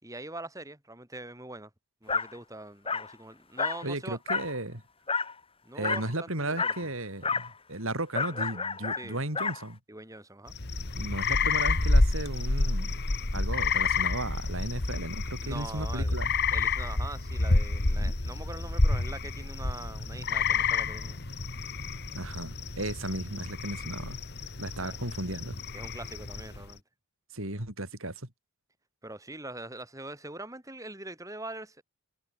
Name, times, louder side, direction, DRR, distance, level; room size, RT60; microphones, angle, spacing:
voice 1, 0.0-1.7 2.0-4.2 5.6-6.9 9.0-9.2 9.9-10.5 15.4-16.2 16.5-21.2 24.8-25.0 25.7-26.8 29.0-31.8, right 2 dB, 15° right, 4.3 m, -43 dB
Dog, 2.1-2.3 2.9-3.1 3.6-3.9 4.3-4.6 5.1-5.3 5.8-6.1 6.6-6.8 7.2-7.5 8.1-9.6, left 5 dB, 25° left, 4.6 m, -30 dB
voice 2, 3.8-4.8 5.7-9.8 10.9-13.0 13.3-16.3 22.1-24.2 24.6-25.5 27.3-28.3, right 1 dB, 65° right, 5.1 m, -35 dB
sound 1, 10.5-26.7, left 3 dB, 50° left, 1.7 m, -29 dB
head